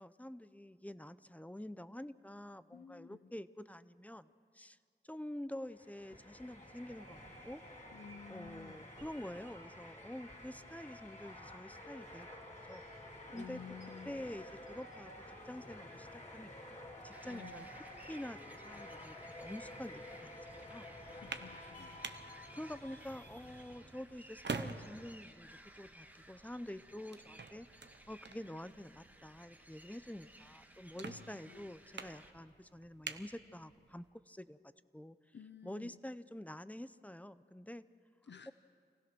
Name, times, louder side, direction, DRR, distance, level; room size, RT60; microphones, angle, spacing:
voice 1, 0.0-4.8 5.0-7.6 8.3-12.8 13.3-13.6 14.1-15.1 15.5-17.7 18.0-20.9 22.5-27.8 28.1-34.6 34.9-35.2 35.6-37.8, left 1 dB, 10° left, 14 dB, 0.6 m, -47 dB
voice 2, 2.7-3.3 7.9-8.9 13.3-14.3 17.2-17.7 21.1-22.0 31.0-31.7 35.3-36.0 38.2-38.5, left 7 dB, 90° left, 10 dB, 0.6 m, -53 dB
sound 1, 5.6-24.1, left 1 dB, 40° left, 2.7 m, -51 dB
sound 2, 17.1-32.3, right 1 dB, 10° right, 1.7 m, -59 dB
sound 3, 21.0-34.1, right 4 dB, 85° right, 0.8 m, -49 dB
26.5 x 16.5 x 6.1 m, 2.1 s
wide cardioid pair, 50°, 18 cm